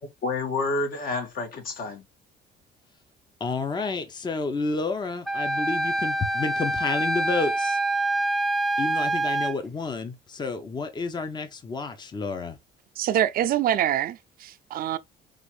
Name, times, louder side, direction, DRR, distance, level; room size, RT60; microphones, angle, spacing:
voice 1, 0.0-2.0, left 3 dB, 60° left, 1.9 m, -29 dB
voice 2, 3.4-7.8 8.8-12.6, left 4 dB, 25° left, 0.8 m, -30 dB
Wind instrument woodwind instrument, 5.3-9.5, right 1 dB, ahead, 0.4 m, -26 dB
voice 3, 13.0-15.0, right 11 dB, 60° right, 0.5 m, -25 dB
5.1 x 2.6 x 3.2 m
cardioid pair, 110°, 17 cm